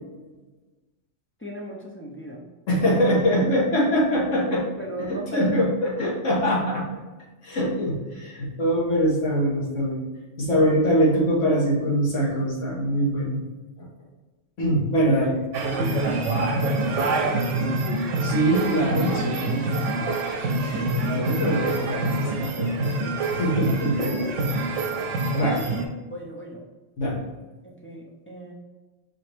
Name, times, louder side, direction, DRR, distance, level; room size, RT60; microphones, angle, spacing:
voice 1, 1.4-2.4 3.4-5.5 6.0-6.1 10.5-10.9 15.1-17.8 23.8-24.5 25.4-25.8 26.1-26.6 27.6-28.5, equal, 20° left, -2 dB, 0.3 m, -36 dB
voice 2, 2.7-4.6 5.1-6.8 7.4-10.1 10.4-13.5 13.8-13.9 14.6-15.3 18.2-19.7 19.9-20.1 20.4-24.0 25.3-25.6 27.0-27.2, equal, 85° left, -5 dB, 1.6 m, -23 dB
sound 1, 15.5-25.8, right 2 dB, 80° right, 1.0 m, -26 dB
4.7 x 3.0 x 3.3 m, 1.2 s
omnidirectional pair, 1.3 m